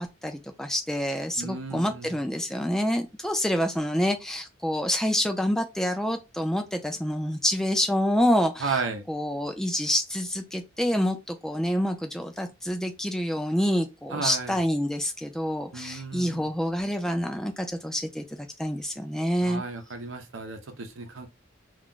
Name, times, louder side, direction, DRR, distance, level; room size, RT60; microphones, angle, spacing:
voice 1, 0.0-8.8 9.1-19.6, equal, 5° left, 0.4 m, -27 dB
voice 2, 1.4-2.2 8.6-9.0 14.1-14.6 15.7-16.5 19.4-21.3, right 4 dB, 85° right, 0.7 m, -33 dB
2.4 x 2.1 x 3.7 m
head